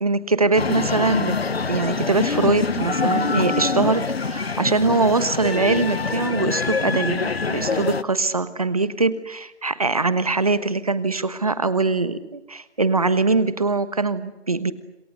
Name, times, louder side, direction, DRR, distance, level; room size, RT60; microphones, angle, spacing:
voice 1, 0.0-1.4 1.7-14.7, right 3 dB, 30° right, 14 dB, 1.3 m, -22 dB
sound 1, 0.6-8.0, left 4 dB, 60° left, 1.0 m, -25 dB
27.5 x 20.5 x 8.2 m, 1.0 s
figure-of-eight pair, 175°, 35 cm